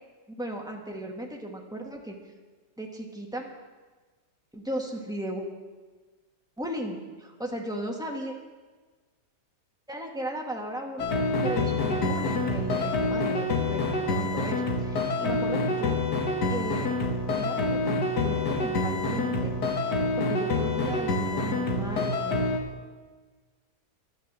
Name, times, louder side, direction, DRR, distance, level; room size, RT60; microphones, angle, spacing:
voice 1, 0.3-2.1 2.8-3.5 4.5-5.5 6.6-8.3 9.9-11.1 11.4-16.0 16.5-17.0 17.4-19.5 20.2-22.4, right 1 dB, ahead, 0 dB, 1.6 m, -36 dB
sound 1, 11.0-22.6, left 2 dB, 85° left, 2.1 m, -27 dB
12.5 x 11.0 x 7.6 m, 1.4 s
omnidirectional pair, 1.7 m